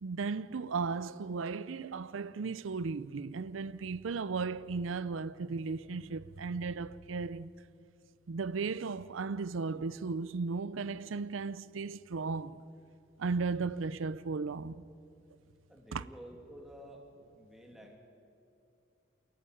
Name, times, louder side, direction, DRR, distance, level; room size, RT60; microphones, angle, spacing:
voice 1, 0.0-7.5 8.3-12.6 13.2-14.8 15.9-16.0, right 4 dB, 90° right, 0.5 m, -35 dB
voice 2, 15.7-17.1 17.3-18.0, equal, ahead, 2.6 m, -51 dB
28.0 x 11.5 x 9.8 m
head